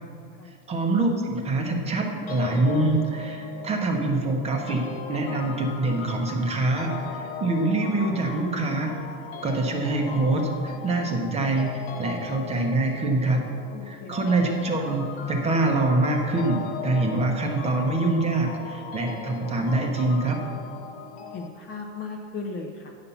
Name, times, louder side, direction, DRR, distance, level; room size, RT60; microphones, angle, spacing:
voice 1, 0.5-8.9 9.4-13.5 13.8-20.4, right 2 dB, 15° right, 2 dB, 0.7 m, -25 dB
sound 1, 2.3-21.5, left 6 dB, 50° left, 1.1 m, -38 dB
voice 2, 13.7-14.1 21.3-22.9, left 4 dB, 25° left, 2 dB, 0.5 m, -36 dB
9.6 x 5.6 x 6.9 m, 2.2 s
supercardioid pair, 170°, 39 cm